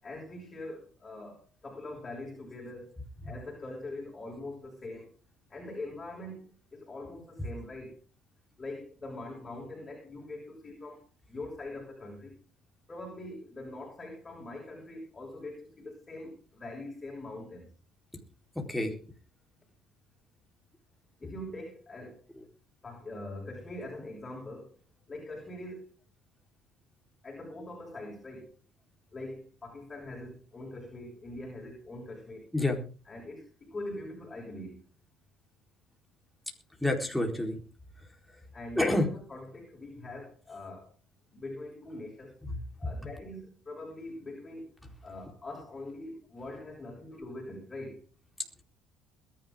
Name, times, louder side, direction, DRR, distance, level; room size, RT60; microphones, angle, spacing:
voice 1, 0.0-3.0 3.2-5.1 5.5-7.9 8.6-12.3 12.9-17.7 21.2-22.2 22.8-24.7 25.1-25.9 27.2-28.5 29.1-32.5 33.1-34.8 38.5-40.9 41.3-42.4 42.8-44.7 45.0-48.0, left 2 dB, 25° left, -1 dB, 6.8 m, -43 dB
voice 2, 36.8-37.6 38.8-39.1 42.4-42.6, left 1 dB, 5° left, 1 dB, 4.3 m, -28 dB
21.5 x 11.0 x 3.9 m, 0.37 s
cardioid pair, 110°, 0 cm